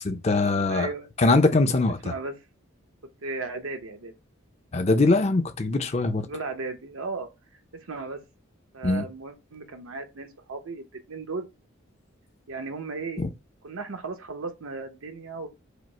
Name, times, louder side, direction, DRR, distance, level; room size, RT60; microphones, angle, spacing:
voice 1, 0.0-0.9 1.2-2.1 4.7-6.3 8.8-9.0 13.2-13.3, left 3 dB, 30° left, 0.5 m, -22 dB
voice 2, 0.7-1.1 2.0-2.3 3.2-4.1 6.3-7.3 7.8-8.2 8.7-11.5 12.5-13.2 13.6-15.5, right 3 dB, 85° right, 0.9 m, -35 dB
5.0 x 2.0 x 4.3 m
head